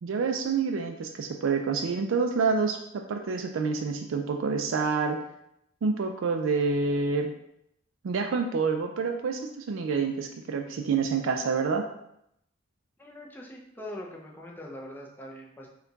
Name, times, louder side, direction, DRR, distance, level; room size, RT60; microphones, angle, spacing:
voice 1, 0.0-5.2 5.8-7.3 8.0-11.8, right 5 dB, 85° right, 4 dB, 0.4 m, -27 dB
voice 2, 13.0-15.7, left 1 dB, 10° left, -2 dB, 0.6 m, -42 dB
4.3 x 2.3 x 3.9 m, 0.77 s
head